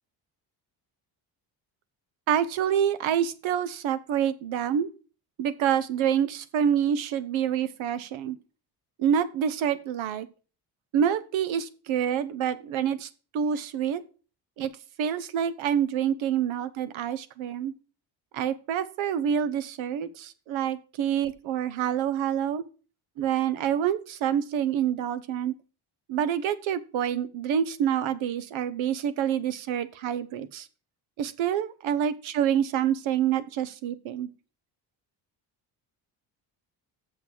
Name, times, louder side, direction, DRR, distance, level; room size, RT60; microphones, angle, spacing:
voice 1, 2.3-4.9 5.4-8.4 9.0-10.3 10.9-14.0 14.6-14.7 15.0-17.7 18.3-22.6 23.2-25.5 26.1-30.6 31.2-34.3, right 9 dB, 80° right, 15 dB, 1.1 m, -27 dB
7.0 x 6.2 x 7.5 m, 0.36 s
cardioid pair, 90°, 46 cm